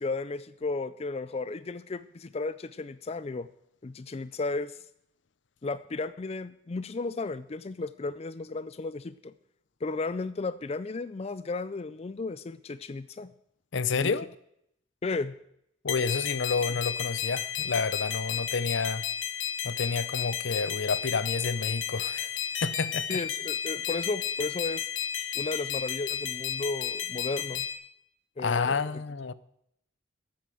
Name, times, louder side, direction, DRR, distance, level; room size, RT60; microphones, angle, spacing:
voice 1, 0.0-3.5 3.8-4.8 5.6-9.3 9.8-13.3 14.0-14.2 15.0-15.4 23.1-24.9 25.3-27.7 28.4-28.8, left 3 dB, 30° left, 0.4 m, -34 dB
voice 2, 13.7-14.3 15.8-19.0 19.6-23.2 28.4-29.3, left 4 dB, 70° left, 0.6 m, -30 dB
sound 1, 15.9-27.7, left 9 dB, 85° left, 1.8 m, -33 dB
13.5 x 8.6 x 7.7 m
head